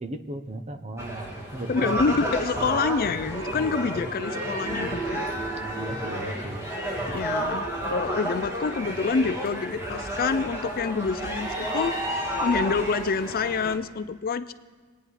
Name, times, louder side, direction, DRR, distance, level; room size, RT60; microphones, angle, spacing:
voice 1, 0.0-2.1 5.5-6.7, right 1 dB, 30° right, 8 dB, 0.8 m, -36 dB
sound 1, 1.0-13.7, right 1 dB, 15° right, 1.7 m, -31 dB
voice 2, 1.7-5.3 7.1-12.0 12.4-14.5, left 5 dB, 45° left, 12 dB, 0.4 m, -27 dB
25.0 x 9.4 x 4.1 m, 1.4 s
head